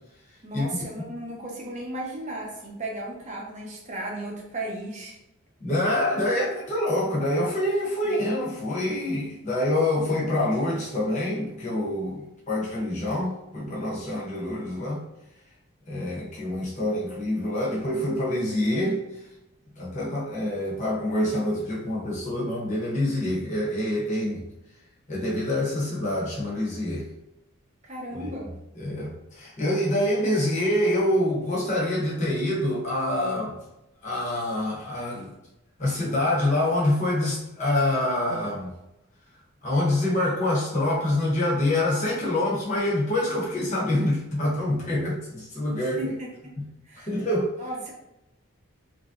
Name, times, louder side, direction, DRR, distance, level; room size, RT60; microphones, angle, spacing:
voice 1, 0.4-5.2 27.8-28.6 45.8-46.3 46.8-47.1 47.6-47.9, right 1 dB, 35° right, -2 dB, 0.6 m, -35 dB
voice 2, 5.6-15.0 15.9-19.0 19.8-24.4 25.1-27.1 28.2-28.3 28.8-33.6 34.0-35.3 35.8-38.7 39.6-46.1 47.0-47.6, left 1 dB, 35° left, -5 dB, 0.8 m, -26 dB
3.0 x 2.6 x 2.4 m, 0.91 s
head